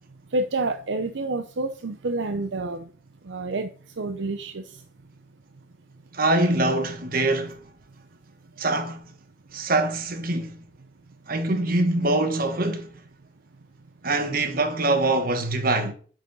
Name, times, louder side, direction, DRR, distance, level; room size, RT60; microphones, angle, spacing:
voice 1, 0.3-2.8 3.3-3.7 4.0-4.6, right 2 dB, 75° right, 0.6 m, -28 dB
voice 2, 6.1-7.6 8.6-9.0 9.5-10.6 11.3-12.9 14.0-15.9, right 2 dB, 50° right, 1.3 m, -24 dB
8.4 x 6.3 x 5.4 m
head